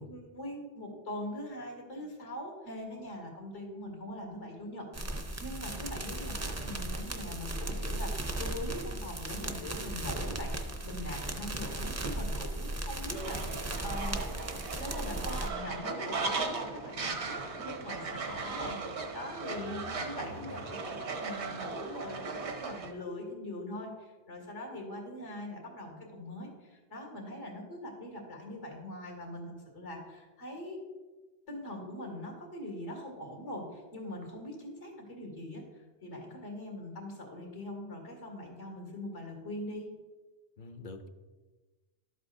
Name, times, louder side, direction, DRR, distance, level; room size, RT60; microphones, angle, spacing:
voice 1, 0.0-14.2 14.8-30.8 31.5-35.6 36.0-39.9, left 1 dB, 85° left, 1 dB, 2.6 m, -42 dB
sound 1, 4.9-15.5, right 1 dB, 20° right, 0.4 m, -36 dB
Fowl, 13.1-22.9, right 4 dB, 75° right, 1.2 m, -37 dB
voice 2, 19.5-20.6 40.6-41.1, left 2 dB, 50° left, 7 dB, 0.8 m, -46 dB
12.0 x 8.1 x 2.6 m, 1.3 s
omnidirectional pair, 1.1 m